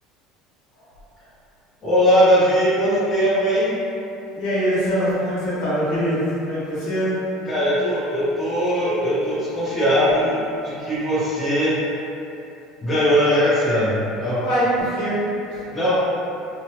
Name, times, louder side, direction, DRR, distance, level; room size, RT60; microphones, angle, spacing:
voice 1, 1.8-3.8 7.5-11.8 12.8-14.5 15.7-16.0, equal, 20° left, -11 dB, 0.6 m, -20 dB
voice 2, 4.3-7.3 14.4-15.6, equal, 70° left, -9 dB, 1.1 m, -23 dB
2.9 x 2.2 x 2.8 m, 2.8 s
cardioid pair, 175°, 0 cm